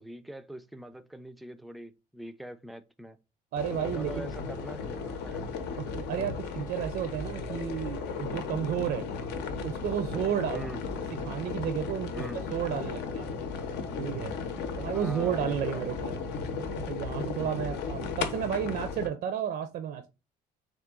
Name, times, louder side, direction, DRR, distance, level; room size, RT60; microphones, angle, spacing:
voice 1, 0.0-3.2 3.8-5.5 10.5-10.8 12.1-12.5 14.9-16.0 17.3-17.6, right 1 dB, ahead, 0.3 m, -43 dB
voice 2, 3.5-4.3 5.8-9.1 9.6-10.7 11.2-13.4 14.0-14.4 14.8-16.2 16.5-20.1, right 9 dB, 70° right, 0.5 m, -32 dB
sound 1, 3.6-19.1, left 5 dB, 85° left, 0.7 m, -35 dB
3.7 x 2.6 x 3.7 m
cardioid pair, 110°, 17 cm